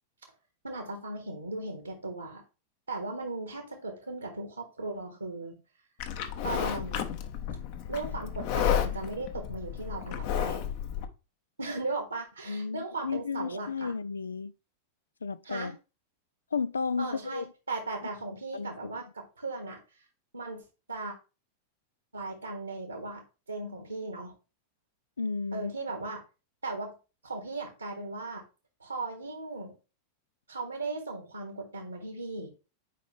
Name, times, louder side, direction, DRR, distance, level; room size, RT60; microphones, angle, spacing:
voice 1, 0.6-2.4 2.9-5.5 6.4-7.2 7.9-10.6 11.6-13.9 15.4-15.7 17.0-20.0 20.3-20.6 20.9-21.1 22.1-23.2 23.5-24.3 25.5-26.2 26.6-26.9 27.2-28.4 28.8-29.7 30.5-32.5, right 3 dB, 80° right, 1.5 m, -37 dB
Livestock farm animals working animals, 6.0-11.0, left 9 dB, 45° left, 1.1 m, -32 dB
voice 2, 12.5-14.5 15.2-15.7 16.5-17.4 18.5-18.7 25.2-25.7, left 5 dB, 75° left, 0.4 m, -33 dB
9.1 x 5.0 x 3.4 m
figure-of-eight pair, 90°, 0 cm